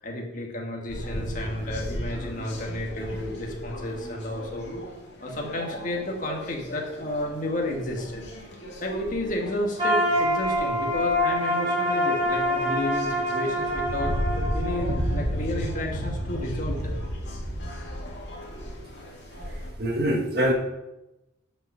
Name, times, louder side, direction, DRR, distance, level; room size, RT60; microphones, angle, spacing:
voice 1, 0.0-4.7 5.2-8.2 8.8-17.0, left 1 dB, 40° left, 0 dB, 1.7 m, -32 dB
sound 1, 0.9-19.7, equal, 60° left, 2.3 m, -34 dB
sound 2, 9.8-15.7, equal, 25° right, 3.3 m, -26 dB
voice 2, 19.8-20.5, equal, 50° right, 1 dB, 1.6 m, -23 dB
9.6 x 5.7 x 5.7 m, 0.96 s
head